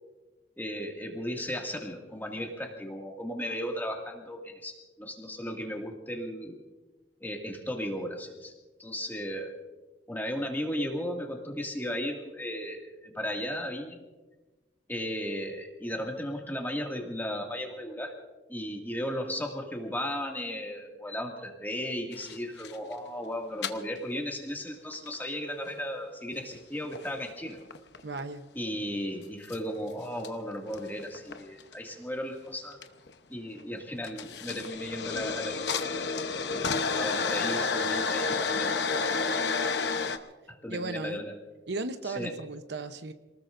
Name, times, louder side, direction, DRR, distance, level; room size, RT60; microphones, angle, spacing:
voice 1, 0.6-6.6 7.2-8.5 8.8-9.5 10.1-14.0 14.9-18.2 18.5-27.6 28.6-32.8 33.3-39.7 40.5-41.3 42.0-42.3, equal, 10° left, 1 dB, 2.2 m, -36 dB
sound 1, 22.1-22.9 23.6-23.7 24.9-25.1 25.7-25.8 26.3-27.1 27.5-28.2 29.5-29.6 30.2-30.3 30.7-31.7 32.8-33.1 33.6-33.7 34.0-40.2, left 4 dB, 70° left, 0.9 m, -30 dB
voice 2, 28.0-28.5 40.7-41.2 41.7-43.1, right 3 dB, 70° right, 9 dB, 0.9 m, -35 dB
28.0 x 19.5 x 2.6 m, 1.2 s
head